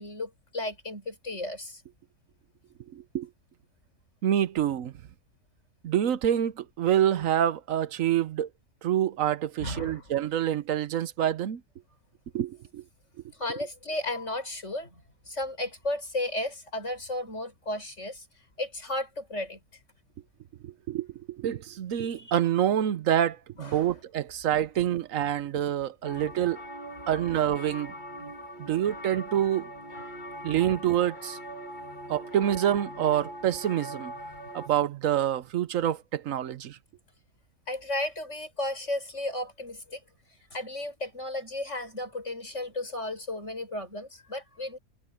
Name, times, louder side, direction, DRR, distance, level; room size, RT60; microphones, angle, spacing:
voice 1, 0.0-1.8 9.6-10.1 13.4-15.0 15.3-18.3 18.6-19.6 22.0-22.4 23.6-24.0 26.1-26.3 37.7-40.0 40.5-44.8, left 1 dB, 55° left, 6.9 m, -34 dB
voice 2, 2.9-3.3 4.2-4.9 5.8-8.5 8.8-11.6 12.3-12.8 20.6-26.6 27.1-27.9 28.6-29.7 30.4-31.4 32.1-34.1 34.5-36.8, right 10 dB, 65° right, 1.1 m, -27 dB
sound 1, 26.0-34.7, equal, 30° left, 2.3 m, -41 dB
omnidirectional pair, 1.5 m